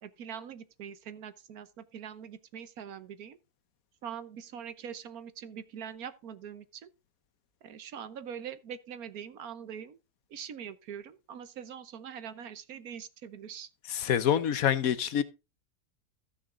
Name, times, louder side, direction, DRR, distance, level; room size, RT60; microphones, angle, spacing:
voice 1, 0.0-3.4 4.0-6.9 7.6-10.0 10.3-13.7, right 8 dB, 70° right, 1.4 m, -43 dB
voice 2, 13.9-15.2, left 9 dB, 65° left, 1.2 m, -26 dB
14.5 x 6.3 x 3.7 m
omnidirectional pair, 1.6 m